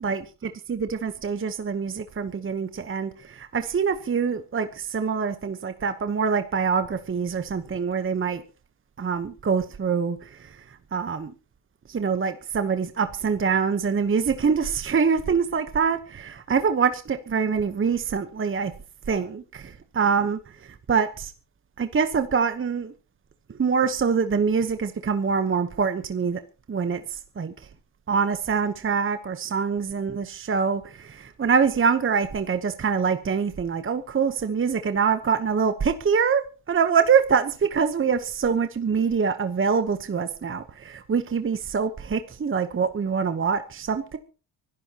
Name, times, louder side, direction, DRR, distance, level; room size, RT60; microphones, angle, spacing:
voice 1, 0.0-8.4 9.0-11.3 11.9-18.7 19.1-21.3 21.8-22.9 23.6-26.4 26.7-27.5 28.1-44.2, right 6 dB, 25° right, 9 dB, 1.1 m, -25 dB
24.5 x 13.0 x 3.0 m, 0.36 s
cardioid pair, 90°, 47 cm